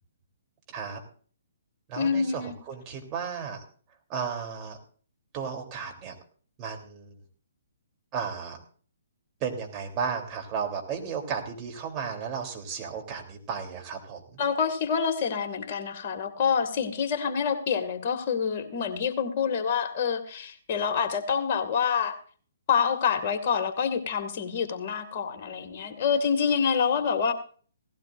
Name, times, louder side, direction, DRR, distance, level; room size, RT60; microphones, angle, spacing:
voice 1, 0.7-1.0 1.9-3.6 4.1-4.8 5.3-6.1 6.6-7.2 8.1-8.6 9.4-14.2, right 6 dB, 25° right, 2 dB, 3.3 m, -34 dB
voice 2, 2.0-2.6 14.4-22.1 22.7-27.3, left 6 dB, 40° left, 5 dB, 2.1 m, -27 dB
17.5 x 16.0 x 2.6 m, 0.43 s
figure-of-eight pair, 130°, 0 cm